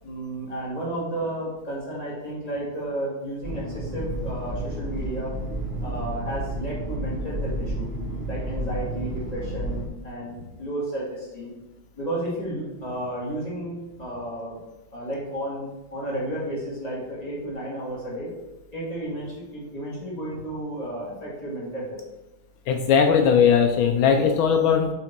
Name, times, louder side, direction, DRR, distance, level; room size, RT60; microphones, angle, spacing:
voice 1, 0.0-5.3 5.8-7.9 8.3-11.5 12.0-14.6 14.9-18.3 18.7-22.0, right 1 dB, 20° left, -6 dB, 2.3 m, -32 dB
sound 1, 3.4-9.8, right 1 dB, 35° right, 1.2 m, -31 dB
voice 2, 22.7-24.9, left 7 dB, 80° left, 4 dB, 1.4 m, -19 dB
8.0 x 3.7 x 4.5 m, 1.0 s
omnidirectional pair, 2.3 m